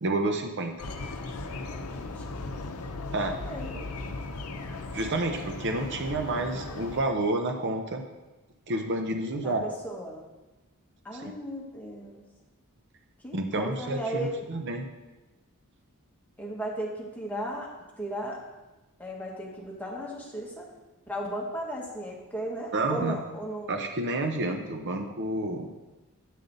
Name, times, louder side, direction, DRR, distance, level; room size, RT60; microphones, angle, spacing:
voice 1, 0.0-0.7 3.1-3.3 4.9-8.0 8.7-9.7 11.1-11.3 13.3-14.8 22.7-23.2 23.7-25.7, right 2 dB, 55° right, 4 dB, 0.6 m, -29 dB
sound 1, 0.8-7.0, left 2 dB, 75° left, 0.7 m, -37 dB
voice 2, 3.2-3.8 9.4-10.2 11.0-12.2 13.2-14.4 16.4-17.7 18.0-18.4 19.0-20.7 21.1-23.8, right 1 dB, 5° left, -2 dB, 1.2 m, -36 dB
8.4 x 5.3 x 3.9 m, 1.1 s
head